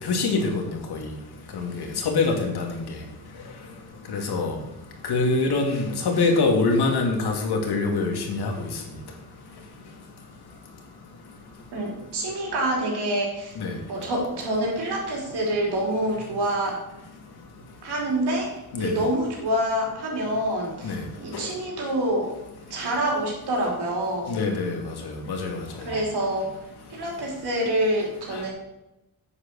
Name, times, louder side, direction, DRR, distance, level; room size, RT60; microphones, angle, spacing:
voice 1, 0.0-1.0 1.5-2.8 4.1-4.6 5.0-8.7 13.6-13.7 18.7-18.9 20.8-21.0 21.3-21.4 24.3-26.0, left 3 dB, 85° left, 2 dB, 2.7 m, -25 dB
voice 2, 11.7-13.6 13.9-16.8 17.8-18.5 18.7-20.9 21.2-22.3 22.7-24.4 25.9-26.5 26.9-28.5, right 1 dB, 85° right, -1 dB, 4.5 m, -26 dB
9.8 x 8.3 x 6.5 m, 0.93 s
wide cardioid pair, 175°, 38 cm